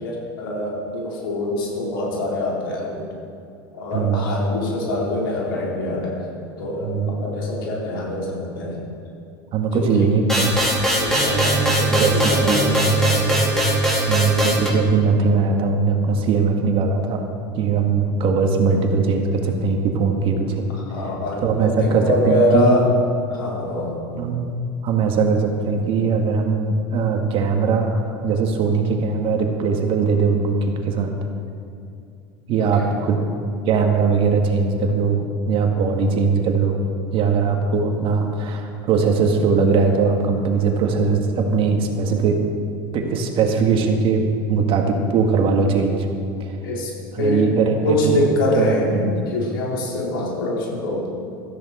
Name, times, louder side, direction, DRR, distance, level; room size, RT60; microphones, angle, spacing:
voice 1, 0.0-3.1 3.7-6.2 6.6-8.8 9.7-10.1 11.0-13.2 20.7-22.9 23.3-24.0 32.6-32.9 46.6-47.5 47.8-51.1, left 1 dB, 85° left, -3 dB, 4.1 m, -24 dB
voice 2, 3.9-4.4 6.8-7.1 9.5-10.6 11.9-12.7 14.1-17.2 17.6-20.6 21.4-22.7 24.2-24.5 24.8-31.1 32.5-33.2 33.7-36.8 37.1-42.4 42.9-46.1 46.4-46.6 47.1-48.3 48.6-49.1, right 5 dB, 50° right, 3 dB, 2.1 m, -20 dB
sound 1, 10.3-14.7, equal, 5° left, 4.2 m, -21 dB
sound 2, 11.1-18.2 18.6-18.9 19.2-19.3, right 4 dB, 30° right, 4.4 m, -25 dB
17.0 x 14.0 x 4.4 m, 2.5 s
hypercardioid pair, 95°, 11 cm